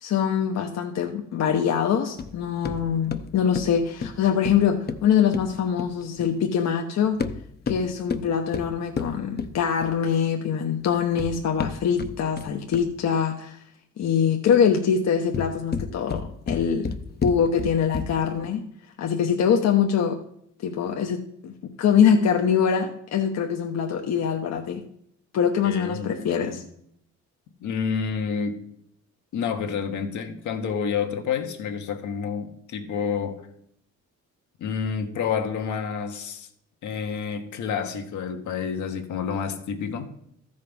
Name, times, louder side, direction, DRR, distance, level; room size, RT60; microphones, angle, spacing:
voice 1, 0.0-7.2 7.7-13.6 14.0-16.9 17.2-18.6 19.0-20.2 20.6-24.8 25.3-26.6, left 7 dB, 60° left, 1.0 m, -23 dB
sound 1, 2.2-6.4 7.1-10.1 10.9-13.1 15.1-18.4, left 5 dB, 35° left, 0.7 m, -32 dB
voice 2, 25.6-26.6 27.6-28.6 29.3-33.5 34.6-36.5 36.8-40.1, left 6 dB, 75° left, 1.4 m, -29 dB
13.5 x 5.3 x 5.3 m
cardioid pair, 90°, 30 cm